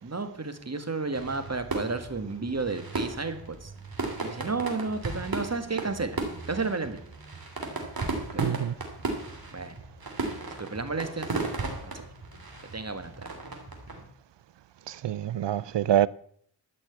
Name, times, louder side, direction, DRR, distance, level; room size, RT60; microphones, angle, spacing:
voice 1, 0.0-3.7 4.2-6.2 6.5-7.0 8.3-8.5 9.5-9.7 10.2-11.3 11.6-12.0 12.7-13.3, right 3 dB, 35° right, 1.7 m, -32 dB
sound 1, 1.1-14.0, right 3 dB, 55° right, 3.0 m, -35 dB
voice 2, 8.4-8.7 14.9-16.1, right 11 dB, 75° right, 0.6 m, -26 dB
13.5 x 6.1 x 8.1 m
wide cardioid pair, 65°, 44 cm